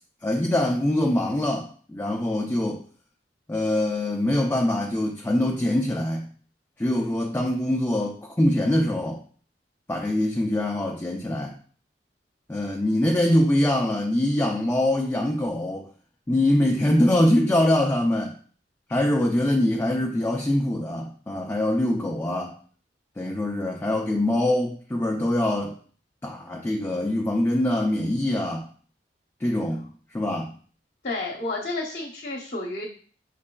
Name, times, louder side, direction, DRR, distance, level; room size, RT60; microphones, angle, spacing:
voice 1, 0.2-2.8 3.5-6.3 6.8-9.2 9.9-11.6 12.5-15.9 16.3-18.4 18.9-22.6 23.2-25.8 26.2-28.7 29.4-30.5, left 1 dB, 15° left, 0 dB, 0.4 m, -24 dB
voice 2, 31.0-32.8, left 2 dB, 50° left, -2 dB, 0.8 m, -31 dB
6.0 x 3.2 x 2.3 m, 0.44 s
head